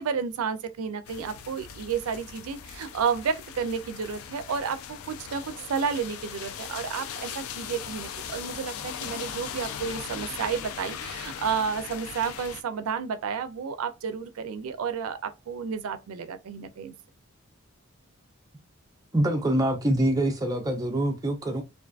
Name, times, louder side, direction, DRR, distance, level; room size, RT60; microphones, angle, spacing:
voice 1, 0.0-5.4 5.7-16.9, right 6 dB, 85° right, 0.4 m, -31 dB
sound 1, 1.1-12.6, left 8 dB, 85° left, 0.3 m, -39 dB
voice 2, 19.1-21.6, right 1 dB, 15° right, 0.4 m, -25 dB
2.5 x 2.3 x 2.4 m
head